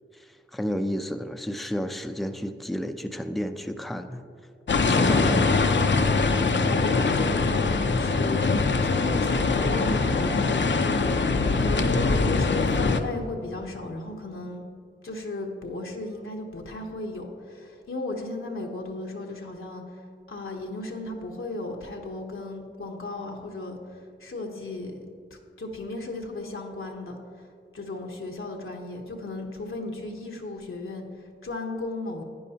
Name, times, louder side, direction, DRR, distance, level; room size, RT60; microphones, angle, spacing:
voice 1, 0.1-4.2 4.9-5.6, equal, ahead, 7 dB, 0.5 m, -31 dB
sound 1, 4.7-13.0, left 4 dB, 60° left, 0.6 m, -23 dB
voice 2, 6.6-14.6 15.0-25.0 25.3-27.5 27.7-32.2, left 2 dB, 75° left, 1 dB, 0.9 m, -35 dB
10.5 x 9.4 x 2.8 m, 2.3 s
wide cardioid pair, 45°, 21 cm